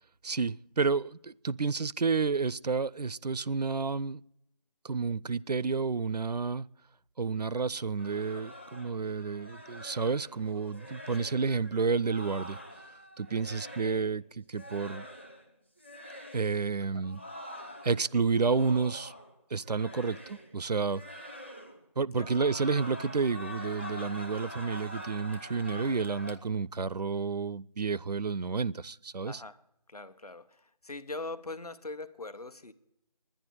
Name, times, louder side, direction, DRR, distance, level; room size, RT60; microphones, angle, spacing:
voice 1, 0.2-4.2 4.8-6.7 7.2-12.6 13.2-15.1 16.3-17.2 17.8-19.1 19.5-21.0 22.0-29.4, right 4 dB, 80° right, 0.4 m, -30 dB
sound 1, 8.0-14.1 14.5-15.5 15.8-16.6 17.0-19.4 19.6-20.6 20.9-21.8 22.1-26.4, left 1 dB, 15° left, 0.6 m, -45 dB
voice 2, 29.2-29.6 29.9-32.7, left 3 dB, 65° left, 1.1 m, -42 dB
10.5 x 10.0 x 9.2 m
figure-of-eight pair, 165°, 21 cm